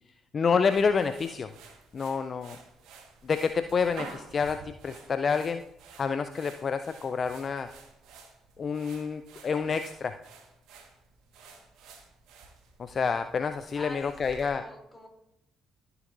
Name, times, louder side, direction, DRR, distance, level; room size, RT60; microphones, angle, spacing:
voice 1, 0.3-1.5 1.9-2.6 3.2-5.6 6.0-7.7 8.6-10.2 12.8-14.6, left 5 dB, 45° left, 10 dB, 0.4 m, -28 dB
sound 1, 0.7-14.5, right 4 dB, 70° right, 1.4 m, -51 dB
voice 2, 13.7-15.1, left 1 dB, 20° left, 1 dB, 3.1 m, -45 dB
14.5 x 6.9 x 2.6 m, 0.84 s
hypercardioid pair, 45°, 0 cm